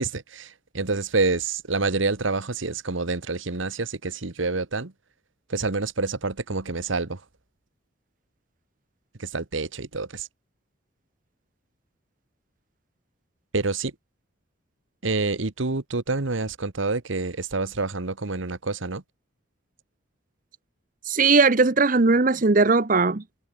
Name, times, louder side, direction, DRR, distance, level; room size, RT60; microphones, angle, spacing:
voice 1, 0.0-4.9 5.5-7.2 9.2-10.3 13.5-13.9 15.0-19.0, right 3 dB, 75° right, 1.4 m, -27 dB
voice 2, 21.1-23.2, right 3 dB, 40° right, 0.9 m, -19 dB
head